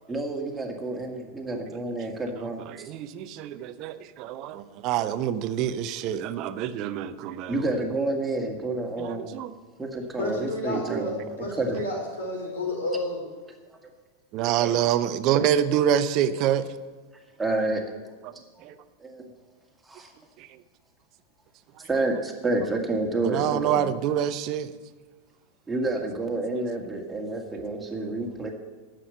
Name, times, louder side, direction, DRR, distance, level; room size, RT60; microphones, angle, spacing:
voice 1, 0.1-2.6 7.5-9.4 9.8-11.2 11.6-11.8 14.6-14.7 17.4-17.8 19.0-19.3 19.9-20.1 21.9-23.9 25.7-28.5, right 2 dB, 10° right, 2.0 m, -29 dB
voice 2, 2.7-7.6 9.0-9.5 10.7-11.1 14.3-16.7 18.6-18.7 20.4-20.5 23.2-24.7, right 10 dB, 40° right, 0.7 m, -26 dB
voice 3, 10.2-13.2, left 2 dB, 65° left, 4.9 m, -31 dB
11.0 x 7.7 x 8.1 m
figure-of-eight pair, 90°, 0 cm